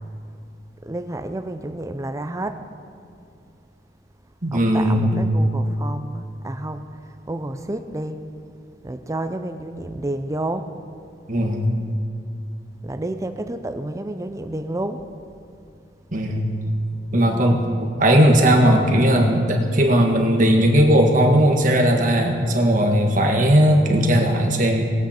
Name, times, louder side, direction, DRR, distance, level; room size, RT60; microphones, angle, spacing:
voice 1, 0.8-2.6 4.5-8.2 8.8-10.7 12.8-15.0, right 1 dB, 15° right, 9 dB, 0.5 m, -30 dB
voice 2, 4.4-5.2 11.3-11.7 16.1-16.5 17.1-24.8, equal, 45° right, 1 dB, 1.5 m, -17 dB
20.0 x 8.2 x 4.3 m, 2.4 s
head